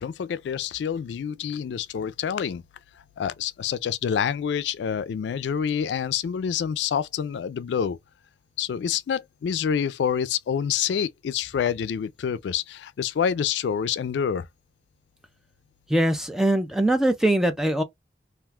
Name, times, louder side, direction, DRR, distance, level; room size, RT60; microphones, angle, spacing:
voice 1, 0.0-2.6 3.2-8.0 8.6-14.5, left 8 dB, 85° left, 0.3 m, -27 dB
voice 2, 15.9-17.8, right 1 dB, 5° right, 0.4 m, -22 dB
2.4 x 2.2 x 3.4 m
head